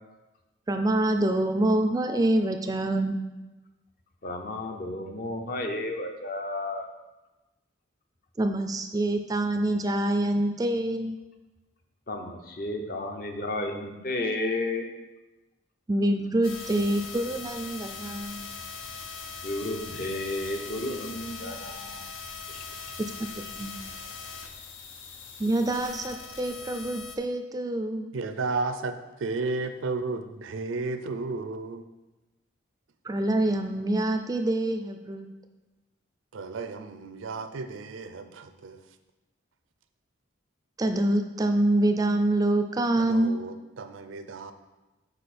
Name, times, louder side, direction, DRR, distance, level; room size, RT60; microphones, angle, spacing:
voice 1, 0.7-3.2 8.4-11.2 15.9-18.5 23.4-23.7 25.4-28.1 33.0-35.3 40.8-43.4, right 1 dB, 20° right, 6 dB, 0.4 m, -26 dB
voice 2, 4.2-6.9 12.1-14.9 19.4-22.1 22.5-22.6, left 2 dB, 45° left, 4 dB, 0.7 m, -32 dB
sound 1, 16.4-27.2, left 4 dB, 85° left, 0.7 m, -41 dB
voice 3, 28.1-31.9 36.3-38.8 43.0-44.5, right 3 dB, 85° right, 9 dB, 0.5 m, -33 dB
6.6 x 4.9 x 4.2 m, 1.1 s
head